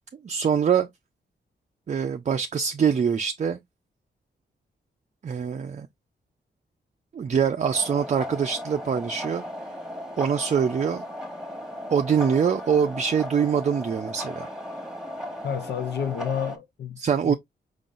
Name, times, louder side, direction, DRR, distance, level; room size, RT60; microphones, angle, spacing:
voice 1, 0.2-0.9 1.9-3.6 5.2-5.9 7.1-9.4 10.2-11.0 11.9-14.5 17.0-17.3, right 7 dB, 40° right, 0.5 m, -24 dB
sound 1, 7.7-16.6, left 1 dB, ahead, 1.3 m, -36 dB
voice 2, 15.4-17.0 17.2-17.3, left 8 dB, 65° left, 0.6 m, -30 dB
5.0 x 3.8 x 2.4 m
cardioid pair, 90°, 18 cm